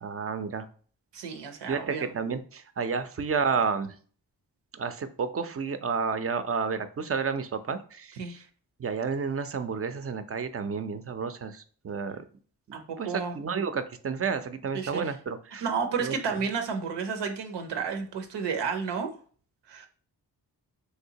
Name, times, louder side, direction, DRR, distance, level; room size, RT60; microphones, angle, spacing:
voice 1, 0.0-0.7 1.7-4.0 4.7-8.4 8.8-12.2 12.7-15.7 16.0-16.1, right 5 dB, 35° right, 11 dB, 0.4 m, -31 dB
voice 2, 1.1-2.1 8.2-8.4 12.7-13.3 14.7-15.1 15.6-19.1 19.7-19.9, right 5 dB, 90° right, 6 dB, 0.6 m, -31 dB
3.3 x 2.8 x 2.8 m, 0.43 s
cardioid pair, 45°, 41 cm